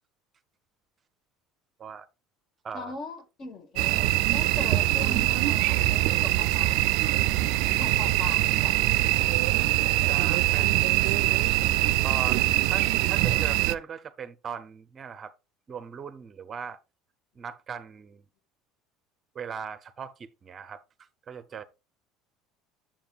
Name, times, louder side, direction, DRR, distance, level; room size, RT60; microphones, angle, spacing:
voice 1, 2.7-7.0 7.8-8.9, left 3 dB, 40° left, 1.2 m, -40 dB
sound 1, 3.8-13.7, right 17 dB, 70° right, 0.3 m, -23 dB
voice 2, 10.0-11.4 12.0-15.3 15.7-16.8 17.3-18.2 19.3-21.6, right 7 dB, 30° right, 0.6 m, -39 dB
9.1 x 7.4 x 2.4 m
cardioid pair, 125°, 0 cm